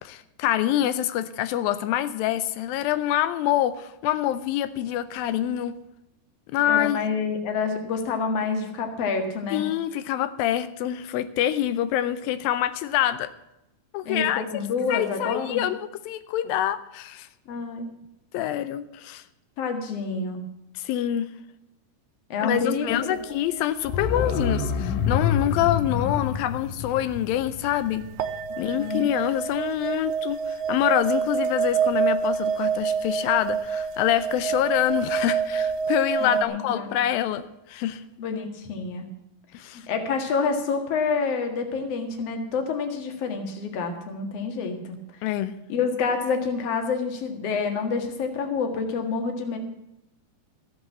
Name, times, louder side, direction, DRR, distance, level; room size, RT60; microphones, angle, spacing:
voice 1, 0.0-5.7 6.5-7.0 9.5-13.3 13.9-14.4 14.9-17.3 18.3-19.2 20.8-21.3 22.4-28.1 28.6-38.0 39.5-39.9 45.2-45.6, left 12 dB, 90° left, 12 dB, 2.4 m, -26 dB
voice 2, 6.7-9.6 14.0-15.6 17.5-17.9 19.6-20.4 22.3-23.2 28.5-29.1 36.2-36.9 38.2-39.1 39.7-45.0 45.7-49.6, left 5 dB, 50° left, 5 dB, 2.5 m, -28 dB
sound 1, 22.9-24.0 24.3-24.4 27.6-27.9 28.2-36.5, right 7 dB, 75° right, 1.8 m, -27 dB
sound 2, 23.8-28.6 28.9-29.0, left 6 dB, 70° left, 2.5 m, -27 dB
14.5 x 8.1 x 7.2 m, 0.87 s
omnidirectional pair, 4.1 m